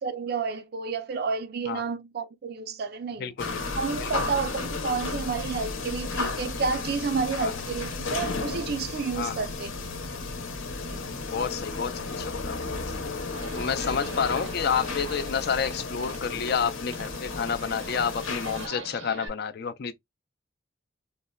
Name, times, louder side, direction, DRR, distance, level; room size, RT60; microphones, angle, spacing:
voice 1, 0.0-3.3 3.8-9.7 10.8-11.1 13.8-14.0, right 5 dB, 50° right, 0.4 m, -30 dB
sound 1, 3.4-18.7, left 3 dB, 85° left, 0.8 m, -33 dB
voice 2, 11.3-11.9 12.2-12.6 13.5-19.9, left 6 dB, 50° left, 0.4 m, -29 dB
Livestock farm animals working animals, 13.3-19.3, right 3 dB, 85° right, 0.9 m, -42 dB
4.0 x 2.1 x 2.2 m
head